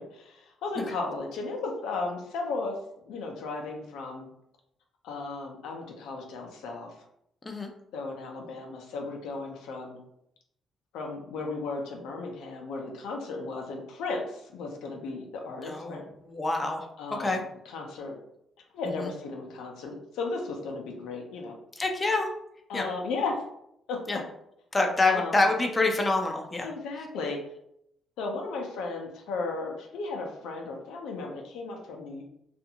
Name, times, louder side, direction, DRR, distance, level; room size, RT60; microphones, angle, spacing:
voice 1, 0.0-2.8 3.1-4.3 5.0-6.9 7.9-10.0 10.9-16.0 17.0-18.2 18.7-21.6 22.7-23.4 23.9-24.2 25.1-25.5 26.6-27.4 28.2-32.2, left 3 dB, 90° left, 1 dB, 0.5 m, -35 dB
voice 2, 15.6-16.9 17.2-17.4 19.0-19.1 21.8-22.3 22.7-22.9 24.1-24.2 24.7-26.7, left 2 dB, 25° left, 3 dB, 0.4 m, -26 dB
2.5 x 2.4 x 2.8 m, 0.77 s
cardioid pair, 90°, 0 cm